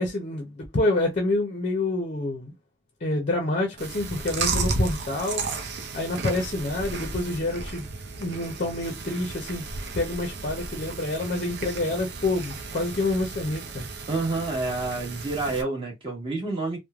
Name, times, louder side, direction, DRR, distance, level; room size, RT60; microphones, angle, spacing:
voice 1, 0.0-2.5 3.0-5.5 5.9-7.9 8.2-9.6 9.9-13.8, left 2 dB, 35° left, 0.6 m, -27 dB
Chewing mastication, 3.8-15.6, right 4 dB, 55° right, 0.5 m, -34 dB
voice 2, 14.1-16.8, right 3 dB, 25° right, 1.2 m, -28 dB
3.1 x 2.1 x 2.3 m
head